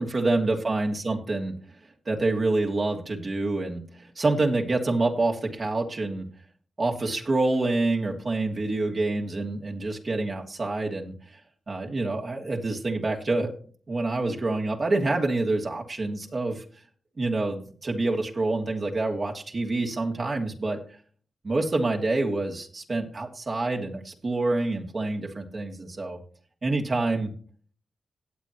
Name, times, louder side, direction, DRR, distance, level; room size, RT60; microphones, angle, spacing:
voice 1, 0.0-1.5 2.1-3.8 4.2-6.3 6.8-11.1 11.7-13.5 13.9-16.6 17.2-20.8 21.4-26.2 26.6-27.3, right 2 dB, 50° right, 0 dB, 2.6 m, -27 dB
18.0 x 7.5 x 3.0 m, 0.43 s
supercardioid pair, 45°, 0 cm